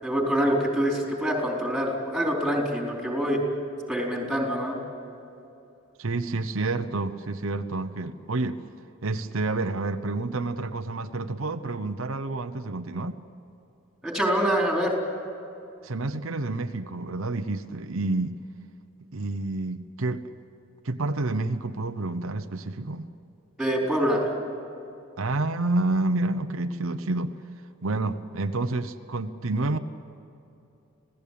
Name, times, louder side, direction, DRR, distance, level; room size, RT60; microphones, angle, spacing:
voice 1, 0.0-3.4 3.9-4.8 14.0-14.9 23.6-24.3, equal, ahead, -1 dB, 4.4 m, -25 dB
voice 2, 6.0-8.6 9.0-13.2 15.8-18.4 19.1-20.3 20.8-23.1 25.2-27.3 27.8-29.8, right 2 dB, 75° right, 8 dB, 0.9 m, -29 dB
27.0 x 17.5 x 8.6 m, 2.9 s
head